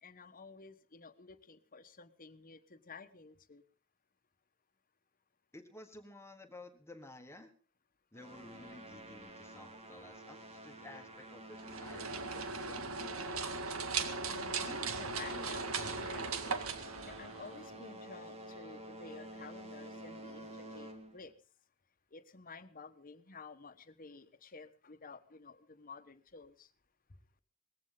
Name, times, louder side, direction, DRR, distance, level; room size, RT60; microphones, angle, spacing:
voice 1, 0.0-3.6 14.2-16.6 17.0-21.3 22.1-26.7, left 4 dB, 40° left, 11 dB, 1.2 m, -52 dB
voice 2, 5.5-7.5 8.1-13.8, left 2 dB, 10° left, 6 dB, 1.3 m, -54 dB
sound 1, 8.1-13.0 13.3-13.7 14.2-21.3, right 1 dB, 30° right, 2.6 m, -50 dB
sound 2, 11.6-17.7, right 4 dB, 75° right, 1.9 m, -38 dB
19.5 x 15.5 x 3.9 m, 0.38 s
head